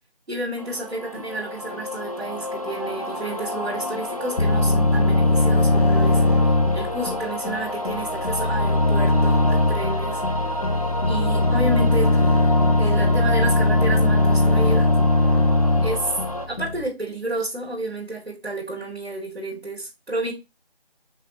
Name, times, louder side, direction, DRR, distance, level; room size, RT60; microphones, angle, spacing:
voice 1, 0.3-6.2 6.7-10.2 11.1-12.2 12.8-14.9 15.8-16.1 16.5-20.3, right 2 dB, 85° right, 2.5 m, -30 dB
sound 1, 0.6-16.5, left 1 dB, 35° left, 0.5 m, -30 dB
sound 2, 4.4-16.9, left 2 dB, 85° left, 1.1 m, -20 dB
5.7 x 3.2 x 2.9 m
figure-of-eight pair, 170°, 31 cm